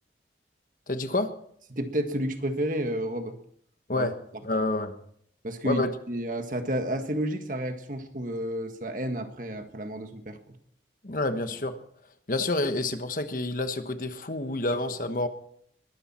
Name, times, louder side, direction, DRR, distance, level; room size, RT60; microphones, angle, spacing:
voice 1, 0.9-1.3 3.9-4.1 4.4-4.9 5.6-5.9 11.0-11.8 12.3-15.3, left 2 dB, 50° left, 9 dB, 1.2 m, -28 dB
voice 2, 1.7-3.4 3.9-4.1 5.4-10.6, right 1 dB, 45° right, 7 dB, 1.7 m, -31 dB
21.5 x 13.5 x 4.4 m, 0.66 s
head